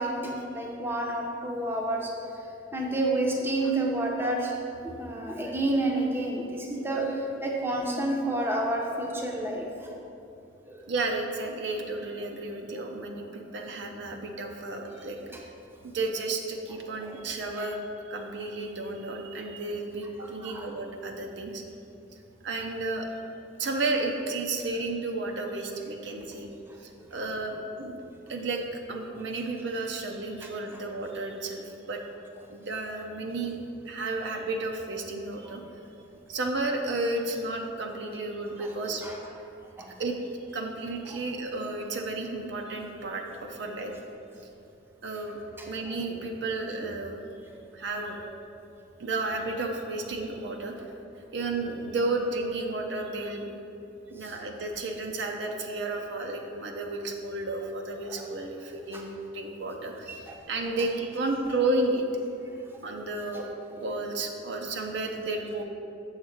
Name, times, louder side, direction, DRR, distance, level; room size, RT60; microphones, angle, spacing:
voice 1, 0.0-2.1 2.7-4.5 4.8-9.9 10.7-10.8 15.3-15.4 17.0-17.1 17.6-17.7 20.4-20.7 35.4-35.6 38.6-39.2 39.8-39.9 45.6-45.7 54.2-54.3 58.1-58.3 58.9-59.0 60.1-60.4 63.3-63.4, right 1 dB, 10° right, -1 dB, 0.7 m, -30 dB
voice 2, 10.9-15.2 15.8-17.8 18.1-21.6 22.4-23.1 23.6-26.5 26.8-28.6 28.9-32.0 32.5-33.6 33.9-35.6 36.3-39.0 40.0-40.2 40.5-43.9 45.0-45.4 45.6-47.2 47.7-48.2 49.0-50.7 51.3-53.5 54.1-62.0 62.8-63.4 63.8-65.6, right 2 dB, 60° right, 2 dB, 0.6 m, -32 dB
7.2 x 3.6 x 6.4 m, 2.7 s
head